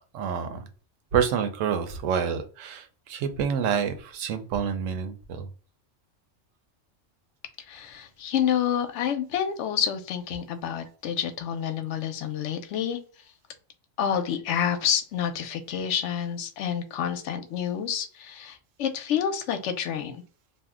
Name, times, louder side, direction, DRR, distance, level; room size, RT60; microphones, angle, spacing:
voice 1, 0.1-0.7 1.1-5.5, right 7 dB, 80° right, 8 dB, 1.0 m, -28 dB
voice 2, 7.7-13.0 14.0-20.2, left 8 dB, 70° left, 7 dB, 0.9 m, -28 dB
2.6 x 2.1 x 3.5 m, 0.39 s
omnidirectional pair, 1.3 m